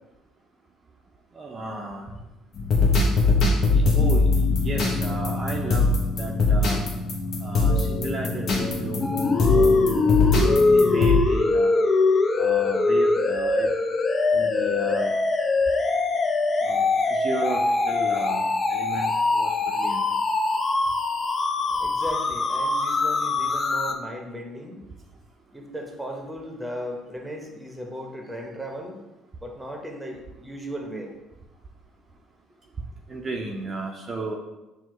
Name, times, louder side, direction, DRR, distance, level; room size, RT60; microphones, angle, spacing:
voice 1, 1.3-2.1 3.6-5.9 6.2-6.8 7.4-9.9 10.7-11.7 12.4-13.7 14.3-15.2 16.6-20.0 33.1-34.4, right 2 dB, 35° right, 0 dB, 0.5 m, -34 dB
sound 1, 2.5-11.2, left 3 dB, 50° left, 0.8 m, -22 dB
sound 2, 9.0-23.9, left 3 dB, 35° left, 0.4 m, -22 dB
voice 2, 21.7-24.8 25.5-29.0 29.4-31.1, equal, 5° right, 1 dB, 0.9 m, -36 dB
5.9 x 2.1 x 3.1 m, 1.0 s
hypercardioid pair, 55°, 0 cm